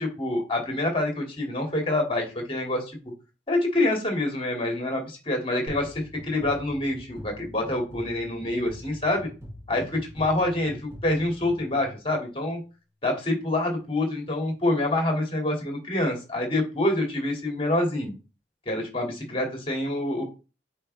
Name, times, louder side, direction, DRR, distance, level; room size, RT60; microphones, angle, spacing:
voice 1, 0.0-2.9 3.5-9.3 9.7-12.6 13.0-18.1 18.7-20.3, left 1 dB, 30° left, 2 dB, 2.3 m, -26 dB
sound 1, 5.7-12.3, left 1 dB, 15° right, 4.3 m, -44 dB
8.8 x 4.6 x 3.3 m, 0.32 s
head